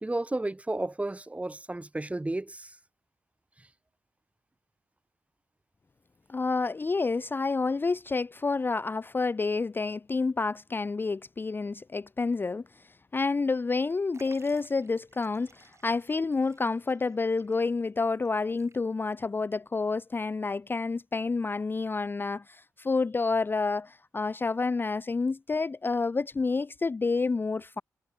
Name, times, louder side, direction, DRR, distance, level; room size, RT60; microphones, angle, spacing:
voice 1, 0.0-2.8 3.6-3.7, right 2 dB, 20° right, 1.4 m, -32 dB
voice 2, 6.3-12.8 13.1-27.8, left 4 dB, 30° left, 0.4 m, -29 dB
Liquid, 14.1-19.2 19.5-19.6 20.6-20.7, right 4 dB, 40° right, 6.6 m, -59 dB
supercardioid pair, 45°, 7 cm